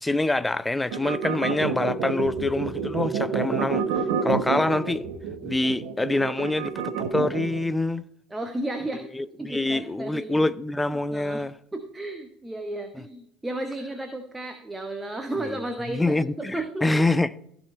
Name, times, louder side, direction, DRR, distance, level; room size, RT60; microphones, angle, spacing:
voice 1, 0.0-3.8 4.2-5.0 5.4-8.0 9.1-11.5 15.4-15.6 15.9-17.4, left 2 dB, 10° left, 0.5 m, -25 dB
sound 1, 0.9-7.6, right 7 dB, 60° right, 1.2 m, -28 dB
voice 2, 8.3-9.0 9.4-10.4 11.1-11.4 11.7-17.0, right 1 dB, 10° right, 1.0 m, -33 dB
14.5 x 5.6 x 4.2 m
figure-of-eight pair, 65°, 0 cm